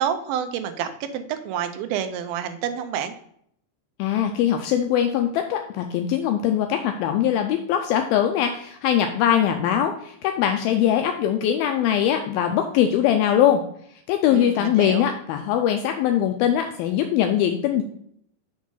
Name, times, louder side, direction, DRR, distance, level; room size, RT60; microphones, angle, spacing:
voice 1, 0.0-3.1 14.3-15.1, right 9 dB, 80° right, 9 dB, 2.3 m, -28 dB
voice 2, 4.0-13.6 14.1-17.8, left 10 dB, 80° left, 5 dB, 2.2 m, -21 dB
6.2 x 4.9 x 5.5 m, 0.68 s
omnidirectional pair, 4.6 m